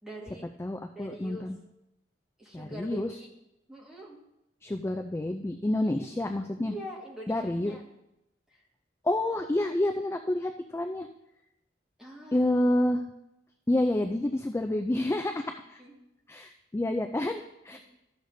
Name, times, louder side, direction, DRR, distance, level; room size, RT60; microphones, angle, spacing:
voice 1, 0.0-0.4 0.9-1.5 2.4-3.3 3.7-4.2 5.8-6.1 6.6-7.9 8.5-8.6 12.0-12.4 15.8-15.9 17.7-17.8, right 1 dB, 5° right, -4 dB, 1.7 m, -44 dB
voice 2, 0.6-1.6 2.5-3.2 4.6-6.7 7.3-7.8 9.0-11.1 12.3-13.0 13.7-15.8 16.3-17.8, left 1 dB, 15° left, 5 dB, 0.3 m, -29 dB
13.0 x 6.5 x 2.7 m, 0.88 s
head